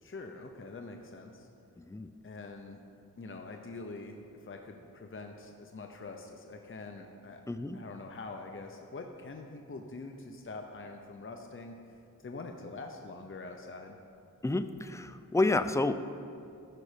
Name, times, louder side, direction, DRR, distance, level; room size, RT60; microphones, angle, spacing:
voice 1, 0.0-1.5 2.2-2.8 3.2-7.4 7.7-14.0, left 3 dB, 35° left, 3 dB, 0.7 m, -45 dB
voice 2, 1.8-2.1 7.5-7.8 14.4-16.0, left 2 dB, 10° left, 11 dB, 0.3 m, -30 dB
13.5 x 5.4 x 5.0 m, 2.6 s
wide cardioid pair, 65°, 34 cm